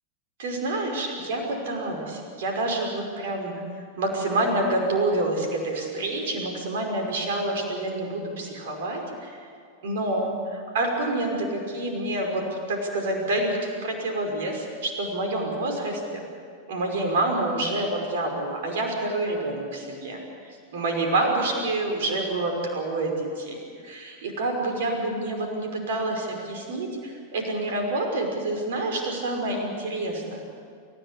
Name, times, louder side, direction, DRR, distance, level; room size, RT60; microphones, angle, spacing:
voice 1, 0.4-3.5 4.0-9.3 9.8-16.0 16.7-23.6 23.8-30.4, right 2 dB, 55° right, 2 dB, 5.5 m, -27 dB
28.5 x 16.0 x 8.5 m, 2.2 s
figure-of-eight pair, 90°, 0 cm